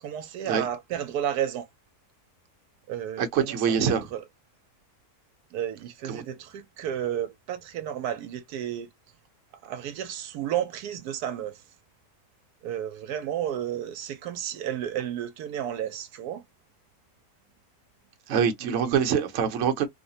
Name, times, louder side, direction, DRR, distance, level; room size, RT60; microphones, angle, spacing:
voice 1, 0.0-1.7 2.9-4.2 5.5-8.9 9.6-11.6 12.6-16.4 18.6-19.1, right 10 dB, 85° right, 1.1 m, -32 dB
voice 2, 3.2-4.1 6.1-6.2 18.3-19.9, right 7 dB, 60° right, 1.0 m, -25 dB
3.1 x 2.1 x 2.7 m
omnidirectional pair, 1.6 m